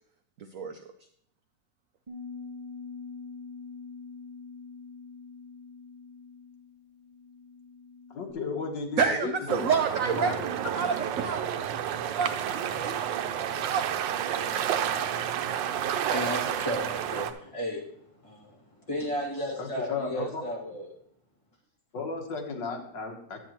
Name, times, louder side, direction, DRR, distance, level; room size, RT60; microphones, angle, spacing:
voice 1, 0.4-0.9 9.0-13.9 14.4-14.7, right 6 dB, 70° right, 7 dB, 0.8 m, -30 dB
Bass guitar, 2.1-8.3, left 4 dB, 40° right, 0.4 m, -44 dB
voice 2, 8.1-9.7 10.1-10.4 19.6-20.4 21.9-23.4, left 4 dB, 80° left, 3 dB, 1.9 m, -34 dB
sound 1, 9.5-17.3, right 9 dB, 90° right, 1.3 m, -30 dB
voice 3, 15.3-17.8 18.2-20.9, equal, 20° left, -4 dB, 2.0 m, -35 dB
10.5 x 8.3 x 2.9 m, 0.66 s
omnidirectional pair, 1.9 m